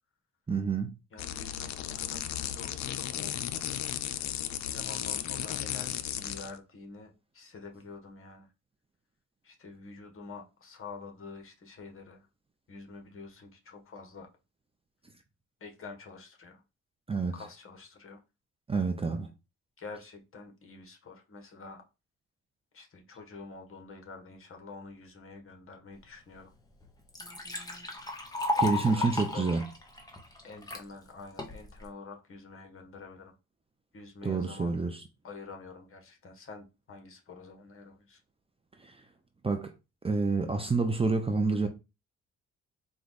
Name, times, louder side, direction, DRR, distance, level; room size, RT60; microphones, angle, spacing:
voice 1, 0.5-0.9 17.1-17.3 18.7-19.3 28.6-29.6 34.2-35.0 38.8-39.0 39.4-39.7 40.0-41.7, right 4 dB, 20° right, 0.6 m, -28 dB
voice 2, 1.1-3.4 4.6-8.5 9.4-12.3 12.7-14.3 15.6-16.6 17.3-18.2 19.8-21.8 22.7-26.5 28.5-29.4 30.4-33.4 33.9-34.7 35.2-38.2, left 4 dB, 45° left, 1.4 m, -47 dB
sound 1, 1.2-6.5, left 11 dB, 65° left, 0.5 m, -35 dB
Liquid, 26.3-26.4 26.8-30.8 31.4-31.9, left 2 dB, 15° left, 1.1 m, -34 dB
4.6 x 2.4 x 4.0 m
cardioid pair, 90°, 30 cm